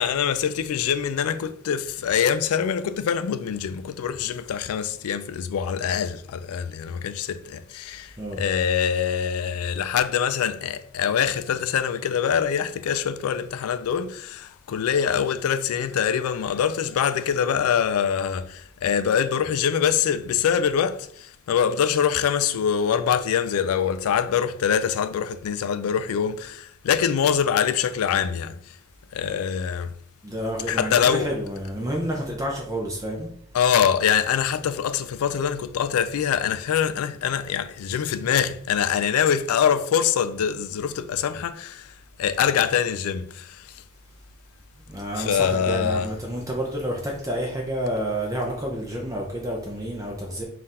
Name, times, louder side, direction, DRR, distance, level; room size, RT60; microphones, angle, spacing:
voice 1, 0.0-28.6 29.1-29.9 30.7-31.3 33.5-41.9 42.2-43.7 45.2-46.1, left 8 dB, 90° left, 0.3 m, -24 dB
voice 2, 30.2-33.3 44.9-50.4, right 1 dB, 15° right, 0.5 m, -29 dB
3.8 x 2.5 x 4.1 m
head